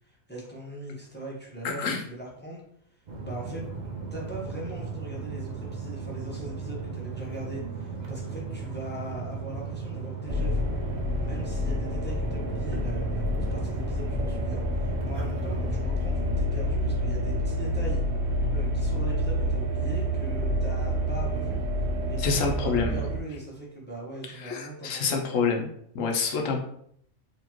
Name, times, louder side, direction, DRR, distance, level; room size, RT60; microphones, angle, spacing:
voice 1, 0.0-2.6 2.9-3.6 4.1-10.7 11.2-18.0 18.5-21.6 22.1-25.2, right 1 dB, 10° left, -4 dB, 0.7 m, -40 dB
voice 2, 1.6-2.0 22.2-23.0 24.3-25.7 25.9-26.6, left 5 dB, 65° left, 2 dB, 1.0 m, -27 dB
sound 1, 3.1-15.8, right 5 dB, 80° right, 0.4 m, -36 dB
sound 2, 10.3-23.2, equal, 60° right, 0.8 m, -28 dB
4.1 x 2.9 x 2.9 m, 0.68 s
omnidirectional pair, 1.5 m